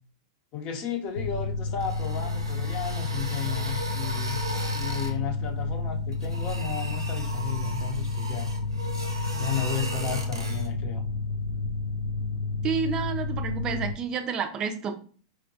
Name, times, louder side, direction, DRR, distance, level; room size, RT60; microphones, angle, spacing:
voice 1, 0.5-4.4 4.7-8.5 9.3-11.0, left 7 dB, 40° left, 3 dB, 0.7 m, -34 dB
Mechanical fan, 1.2-13.9, left 3 dB, 85° left, 0.4 m, -31 dB
sound 1, 1.7-5.2 6.1-10.7, right 2 dB, 85° right, 0.7 m, -37 dB
voice 2, 12.6-15.0, right 6 dB, 30° right, 6 dB, 0.5 m, -30 dB
4.7 x 2.2 x 2.7 m, 0.42 s
hypercardioid pair, 100°, 3 cm